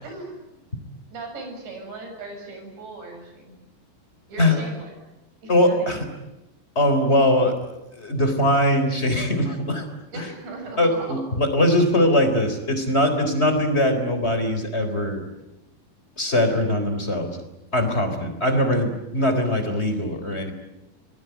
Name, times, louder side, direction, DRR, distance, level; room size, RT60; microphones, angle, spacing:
voice 1, 0.0-0.7 1.1-3.6 4.3-4.9 5.4-6.0 10.1-11.2, right 2 dB, 70° right, 4 dB, 8.9 m, -38 dB
voice 2, 5.5-6.1 6.8-7.6 7.9-9.9 10.1-10.3 10.8-15.2 16.2-17.4 17.7-20.5, left 1 dB, 15° left, 7 dB, 3.4 m, -21 dB
26.5 x 22.0 x 9.3 m, 0.96 s
omnidirectional pair, 5.2 m